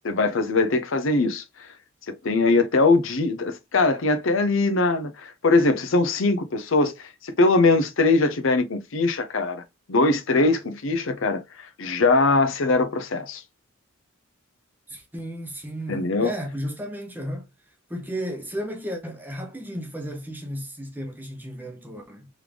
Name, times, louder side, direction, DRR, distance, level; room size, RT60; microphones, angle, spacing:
voice 1, 0.0-1.7 2.1-9.6 9.9-13.4 15.9-16.3, left 3 dB, 65° left, 0.6 m, -22 dB
voice 2, 14.9-17.5 17.9-22.3, equal, 10° right, 0.8 m, -34 dB
3.7 x 3.3 x 3.3 m
head